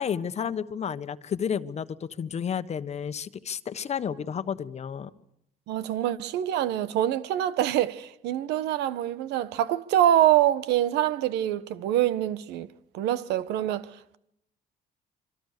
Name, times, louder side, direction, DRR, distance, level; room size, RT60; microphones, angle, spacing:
voice 1, 0.0-5.1, left 7 dB, 40° left, 1.2 m, -31 dB
voice 2, 5.7-12.7 12.9-14.2, right 12 dB, 85° right, 1.2 m, -25 dB
26.5 x 25.0 x 6.7 m
cardioid pair, 110°, 17 cm